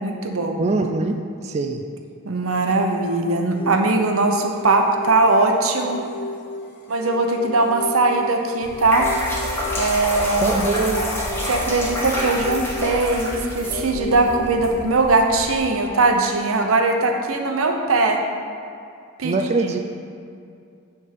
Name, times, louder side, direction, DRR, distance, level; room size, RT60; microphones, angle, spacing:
voice 1, 0.0-0.6 2.2-6.0 6.9-9.1 9.8-10.6 11.5-18.2 19.2-19.8, right 2 dB, 90° right, 3 dB, 0.8 m, -20 dB
voice 2, 0.6-1.2 1.4-1.8 10.4-11.0 19.2-19.8, right 3 dB, 30° right, 4 dB, 0.3 m, -22 dB
sound 1, 3.5-14.5, left 1 dB, 50° left, 0.9 m, -35 dB
sound 2, 8.6-15.6, left 1 dB, 10° left, 1.2 m, -28 dB
9.4 x 3.5 x 5.8 m, 2.4 s
head